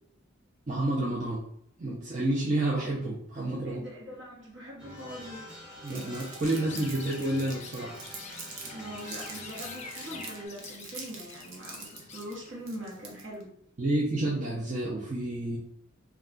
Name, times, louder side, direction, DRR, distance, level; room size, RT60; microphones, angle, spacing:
voice 1, 0.7-1.4 1.8-3.8 5.8-7.9 13.8-15.6, right 1 dB, 40° right, -5 dB, 0.5 m, -29 dB
voice 2, 3.6-5.5 8.6-13.5, equal, 65° right, -4 dB, 1.1 m, -42 dB
sound 1, 4.8-10.5, left 1 dB, 5° right, 0.9 m, -46 dB
Crumpling crinkling, 5.9-8.7 9.0-13.4, right 4 dB, 80° right, 0.7 m, -44 dB
Chirp tweet, 6.4-13.3, left 5 dB, 35° left, 0.3 m, -48 dB
2.3 x 2.2 x 3.6 m, 0.70 s
head